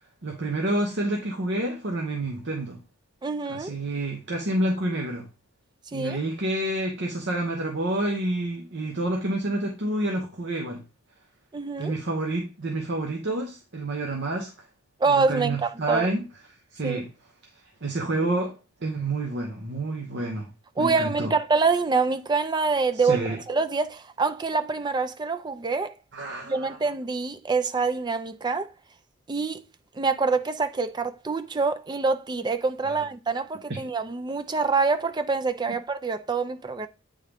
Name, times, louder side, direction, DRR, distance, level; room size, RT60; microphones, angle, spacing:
voice 1, 0.2-2.8 3.5-5.3 5.9-10.8 11.8-14.5 15.1-16.2 16.7-17.1 17.5-20.5 20.8-21.3 23.0-23.4 26.1-26.8 32.8-32.9, right 1 dB, 55° right, 1.0 m, -29 dB
voice 2, 3.2-3.7 5.9-6.2 11.5-11.9 15.0-16.1 16.8-17.0 20.8-25.9 26.4-28.7 29.3-29.6 29.9-36.9, right 4 dB, 20° right, 0.4 m, -26 dB
8.5 x 3.6 x 3.4 m
head